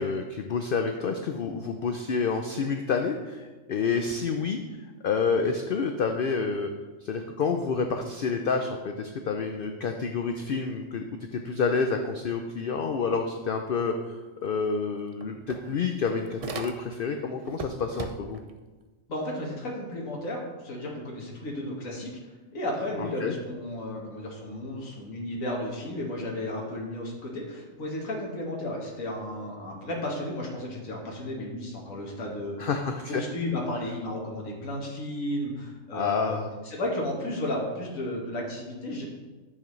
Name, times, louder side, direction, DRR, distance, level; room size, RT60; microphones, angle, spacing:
voice 1, 0.0-4.6 5.0-6.7 7.0-11.0 11.3-18.4 23.0-23.3 32.6-33.2 35.9-36.5, left 5 dB, 55° left, 5 dB, 0.6 m, -28 dB
sound 1, 14.5-14.6 14.9-17.1 17.4-18.5, right 4 dB, 65° right, 0.3 m, -39 dB
voice 2, 19.1-22.1 22.5-32.6 33.1-36.4 36.6-39.1, left 1 dB, 90° left, -2 dB, 1.8 m, -33 dB
10.5 x 6.9 x 3.2 m, 1.2 s
omnidirectional pair, 1.4 m